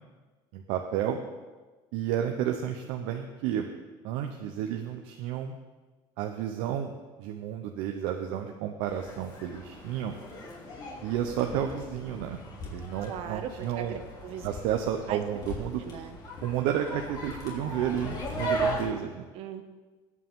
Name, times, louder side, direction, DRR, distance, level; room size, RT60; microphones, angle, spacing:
voice 1, 0.5-1.2 1.9-3.7 4.0-5.5 6.2-6.9 7.2-10.1 11.0-12.4 12.7-14.0 14.4-15.8 16.4-19.3, right 10 dB, 85° right, 3 dB, 0.9 m, -31 dB
sound 1, 8.8-18.8, right 1 dB, 35° left, 3.0 m, -37 dB
voice 2, 13.1-14.5 15.1-15.2 15.8-16.2 19.3-19.6, right 8 dB, 65° right, 7 dB, 1.1 m, -39 dB
20.0 x 8.6 x 3.8 m, 1.3 s
cardioid pair, 145°, 11 cm